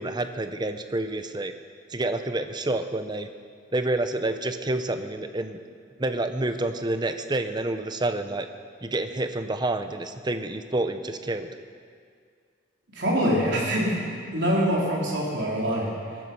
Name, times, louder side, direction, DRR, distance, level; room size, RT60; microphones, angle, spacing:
voice 1, 0.0-1.5 1.9-3.3 3.7-5.6 6.0-8.5 8.8-11.5, right 2 dB, 25° right, 8 dB, 0.8 m, -28 dB
voice 2, 12.9-15.9, equal, 65° right, -4 dB, 4.2 m, -25 dB
20.0 x 12.5 x 5.6 m, 2.1 s
head